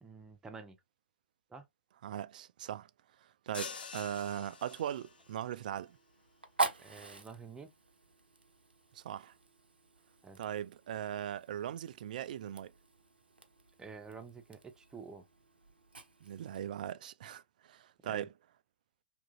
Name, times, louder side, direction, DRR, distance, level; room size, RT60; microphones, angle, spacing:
voice 1, 0.0-0.8 1.5-1.7 6.8-7.7 10.2-10.4 13.8-15.3 18.0-18.3, right 5 dB, 10° right, 0.6 m, -49 dB
voice 2, 2.0-2.9 3.5-6.0 8.9-9.3 10.4-12.7 16.2-18.3, right 10 dB, 55° right, 0.3 m, -39 dB
sound 1, 3.5-5.3, left 6 dB, 70° left, 0.5 m, -46 dB
Fire, 3.5-16.7, right 3 dB, 85° right, 0.7 m, -44 dB
2.9 x 2.5 x 2.6 m
figure-of-eight pair, 110°, 5 cm